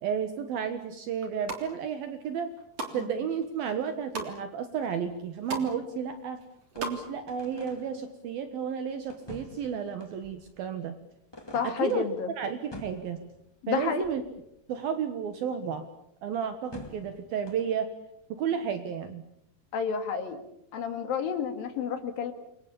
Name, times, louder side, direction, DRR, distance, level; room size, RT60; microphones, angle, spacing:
voice 1, 0.0-2.5 2.9-6.4 6.8-10.9 11.8-12.1 12.4-13.2 13.7-14.2 14.7-15.9 16.2-17.9 18.3-19.2, right 7 dB, 65° right, 9 dB, 3.1 m, -32 dB
sound 1, 1.2-1.6 2.2-3.0 3.4-4.3 4.8-4.9 5.1-5.7 6.0-7.0 7.3-7.4, right 3 dB, 40° right, 4.2 m, -36 dB
sound 2, 5.0-6.2 6.7-8.2 9.1-10.7 11.3-12.3 12.7-14.4 16.7-17.9, left 1 dB, 10° left, 1.5 m, -48 dB
voice 2, 11.5-12.3 13.6-14.1 19.7-20.4 20.7-22.3, left 6 dB, 60° left, 8 dB, 3.8 m, -30 dB
28.5 x 23.5 x 7.2 m, 0.76 s
omnidirectional pair, 4.8 m